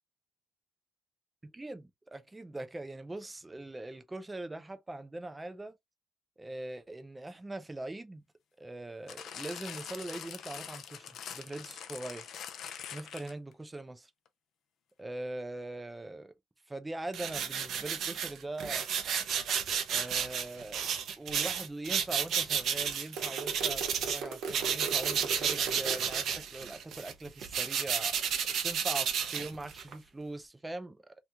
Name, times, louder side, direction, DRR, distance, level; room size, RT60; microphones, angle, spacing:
voice 1, 1.4-5.8 6.4-8.2 8.6-12.3 12.9-14.1 15.0-16.3 16.7-18.9 19.9-20.9 21.2-28.2 28.6-31.2, right 2 dB, 10° right, 0.5 m, -41 dB
sound 1, 9.1-13.5 14.3-14.4, left 8 dB, 55° left, 0.5 m, -44 dB
sound 2, 17.1-24.2 24.5-29.9, right 8 dB, 55° right, 0.7 m, -32 dB
sound 3, 23.2-26.2, right 5 dB, 70° right, 1.0 m, -39 dB
2.9 x 2.4 x 3.4 m
cardioid pair, 135°, 0 cm